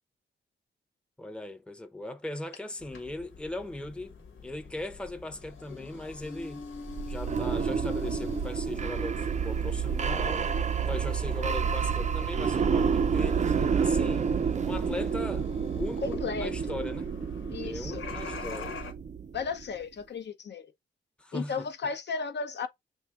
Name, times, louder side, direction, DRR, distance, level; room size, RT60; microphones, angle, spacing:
voice 1, 1.2-4.1 4.4-6.7 7.1-10.5 10.9-14.3 14.6-15.5 15.8-17.1 17.6-18.7 21.2-21.7, left 2 dB, 5° left, 0.7 m, -38 dB
sound 1, 2.8-18.9, left 5 dB, 85° left, 1.3 m, -45 dB
sound 2, 6.9-19.6, right 6 dB, 35° right, 0.4 m, -29 dB
voice 2, 16.0-16.8 17.5-18.0 19.3-20.7 21.3-22.7, left 5 dB, 60° left, 0.7 m, -34 dB
6.2 x 2.6 x 2.3 m
cardioid pair, 65°, 20 cm